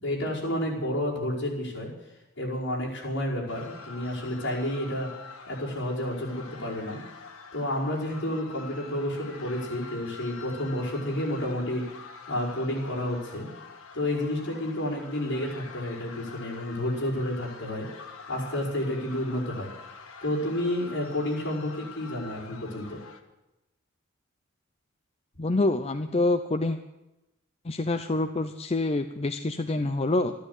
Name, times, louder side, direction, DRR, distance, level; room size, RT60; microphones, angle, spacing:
voice 1, 0.0-1.9 2.4-5.1 5.5-7.0 7.5-11.8 12.3-13.5 13.9-17.9 18.3-19.7 20.2-23.0, left 1 dB, 60° left, -5 dB, 5.2 m, -30 dB
sound 1, 3.5-23.2, left 4 dB, 90° left, 1.6 m, -46 dB
voice 2, 25.4-26.8 27.6-30.3, left 2 dB, 30° left, 7 dB, 0.6 m, -26 dB
13.5 x 12.5 x 8.2 m, 0.98 s
head